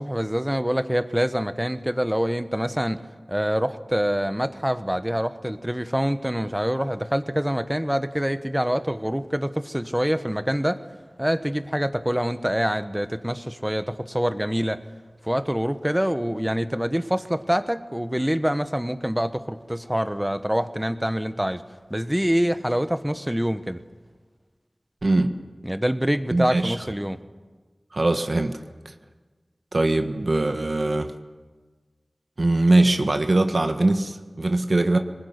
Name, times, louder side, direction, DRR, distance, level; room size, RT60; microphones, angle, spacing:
voice 1, 0.0-3.0 3.3-10.8 11.2-14.8 15.2-21.6 21.9-23.8 25.6-27.2, equal, 10° right, 11 dB, 1.3 m, -25 dB
voice 2, 25.0-25.3 26.3-26.8 27.9-28.6 28.8-28.9 29.7-31.1 32.4-35.0, right 2 dB, 65° right, 7 dB, 1.4 m, -21 dB
20.5 x 20.0 x 9.7 m, 1.4 s
wide cardioid pair, 45°, 0 cm